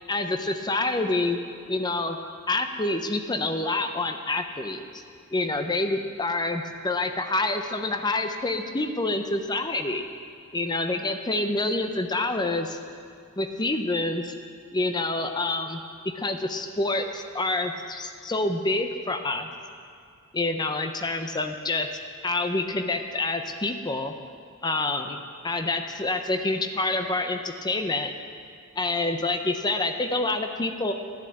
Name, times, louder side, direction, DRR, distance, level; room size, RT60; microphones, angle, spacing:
voice 1, 0.1-1.4 1.7-2.2 2.5-4.8 5.3-10.0 10.5-12.8 13.4-14.2 14.7-15.8 16.1-19.5 20.3-21.9 22.2-24.2 24.6-28.1 28.8-30.9, left 2 dB, 20° left, 7 dB, 0.6 m, -27 dB
10.5 x 10.0 x 7.5 m, 2.2 s
head